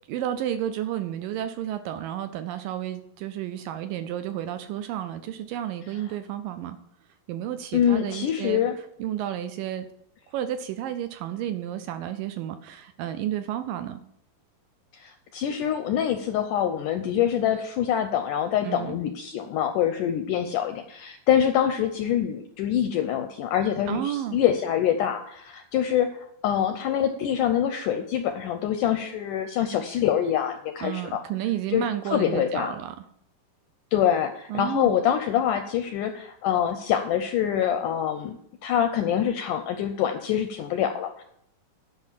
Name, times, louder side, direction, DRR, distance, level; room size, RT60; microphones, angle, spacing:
voice 1, 0.1-6.8 7.3-8.6 9.0-9.9 10.3-14.0 18.6-19.0 23.9-24.4 30.8-33.0 34.5-35.0, right 11 dB, 80° right, 10 dB, 2.1 m, -31 dB
voice 2, 7.7-8.8 14.9-31.2 31.7-32.7 33.9-38.4 38.6-41.2, left 9 dB, 80° left, 7 dB, 1.8 m, -25 dB
10.5 x 5.9 x 7.4 m, 0.71 s
omnidirectional pair, 4.4 m